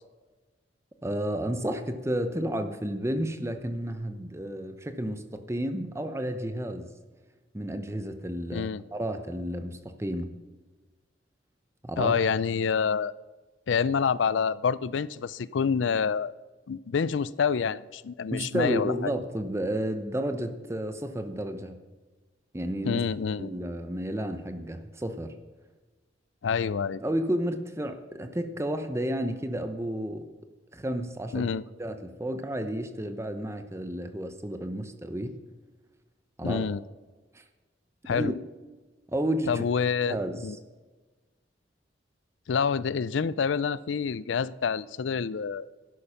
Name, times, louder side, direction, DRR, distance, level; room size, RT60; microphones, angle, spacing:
voice 1, 1.0-6.9 7.5-10.3 11.8-12.2 18.3-21.8 22.5-23.0 23.4-25.3 27.0-30.3 30.7-31.5 31.8-35.4 36.4-36.6 37.3-37.4 38.0-38.3 39.1-39.6 40.1-40.5, right 1 dB, 15° right, 8 dB, 0.8 m, -31 dB
voice 2, 8.5-8.8 12.0-13.1 13.7-16.3 16.7-19.1 22.8-23.5 26.4-27.0 31.3-31.6 36.4-36.8 38.1-38.3 39.5-40.6 42.5-45.7, left 6 dB, 80° left, 19 dB, 0.4 m, -27 dB
12.0 x 11.0 x 5.7 m, 1.2 s
head